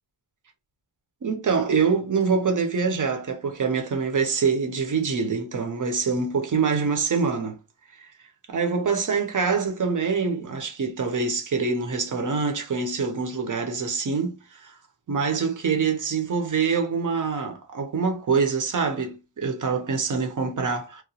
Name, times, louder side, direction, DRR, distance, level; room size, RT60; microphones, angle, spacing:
voice 1, 1.2-7.6 8.0-8.1 8.5-14.7 15.1-21.0, right 5 dB, 45° right, 0.6 m, -25 dB
2.9 x 2.1 x 2.8 m
wide cardioid pair, 115°, 45 cm